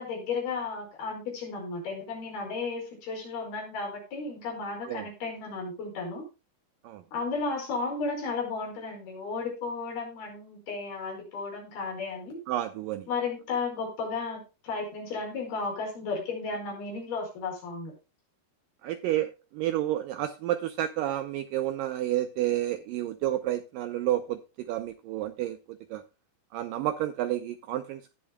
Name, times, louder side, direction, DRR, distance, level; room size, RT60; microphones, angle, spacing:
voice 1, 0.0-6.2 7.1-12.4 13.1-17.9, left 4 dB, 70° left, 6.8 m, -34 dB
voice 2, 12.5-13.1 18.8-26.0 26.5-28.1, right 13 dB, 90° right, 1.9 m, -30 dB
17.5 x 7.5 x 2.3 m
omnidirectional pair, 4.6 m